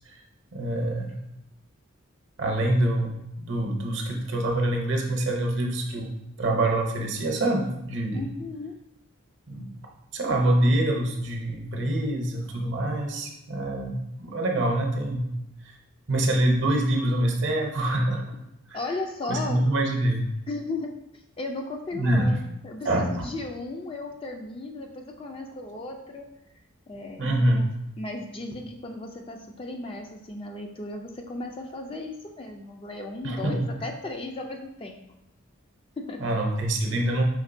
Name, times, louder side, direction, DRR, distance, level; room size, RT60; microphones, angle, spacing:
voice 1, 0.5-1.2 2.4-6.1 6.4-8.2 9.5-9.7 10.1-15.3 15.6-15.7 16.1-18.3 18.7-18.8 19.3-20.3 21.9-22.4 22.8-23.3 27.2-27.7 33.2-33.7 36.2-37.2, right 1 dB, 60° right, 1 dB, 0.7 m, -25 dB
voice 2, 8.1-8.8 18.7-19.6 20.5-21.0 21.4-26.3 26.9-27.7 28.0-35.0 36.0-36.2, left 2 dB, 25° left, 3 dB, 0.3 m, -35 dB
5.1 x 3.6 x 2.6 m, 0.84 s
head